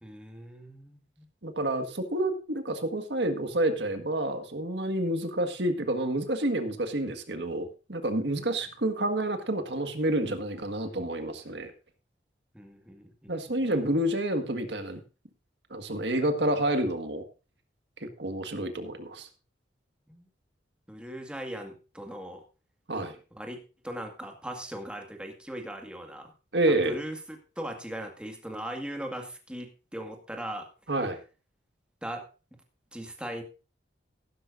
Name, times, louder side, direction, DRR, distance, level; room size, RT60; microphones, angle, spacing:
voice 1, 0.0-1.3 8.4-8.5 12.5-13.1 13.5-13.6 20.1-20.3 20.9-22.4 23.4-26.3 26.7-30.7 32.0-32.3 32.9-33.4, right 1 dB, 5° right, 3 dB, 1.9 m, -39 dB
voice 2, 1.4-11.7 13.3-15.0 15.7-17.2 18.0-19.3 22.9-23.2 26.5-27.0 30.9-31.2, right 1 dB, 65° right, 7 dB, 1.8 m, -29 dB
15.5 x 12.5 x 2.6 m, 0.32 s
head